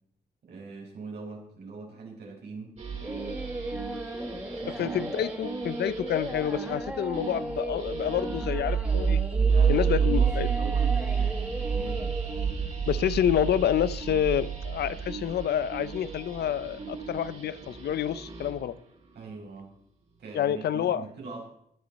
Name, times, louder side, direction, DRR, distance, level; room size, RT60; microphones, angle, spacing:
voice 1, 0.5-2.7 4.3-5.0 8.1-8.4 9.4-12.1 19.1-19.7 20.2-21.5, right 4 dB, 90° right, -2 dB, 5.5 m, -41 dB
sound 1, 2.8-18.7, right 6 dB, 45° right, 3.3 m, -30 dB
Singing, 3.0-12.4, right 1 dB, 10° right, 1.3 m, -36 dB
voice 2, 4.7-9.2 9.7-10.5 12.9-18.8 20.3-21.0, left 10 dB, 90° left, 16 dB, 0.6 m, -28 dB
18.5 x 10.5 x 4.1 m, 0.71 s
cardioid pair, 105°, 17 cm